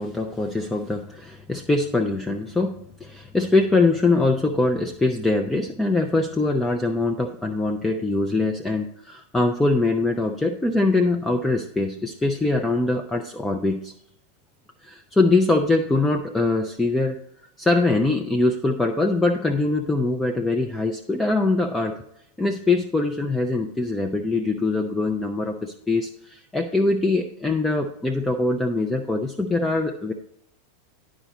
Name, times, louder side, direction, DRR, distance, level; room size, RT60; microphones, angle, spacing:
voice 1, 0.0-13.9 14.8-17.2 17.6-22.0 22.4-30.1, left 2 dB, 10° left, 4 dB, 0.5 m, -23 dB
10.0 x 5.0 x 4.0 m, 0.73 s
figure-of-eight pair, 90°, 0 cm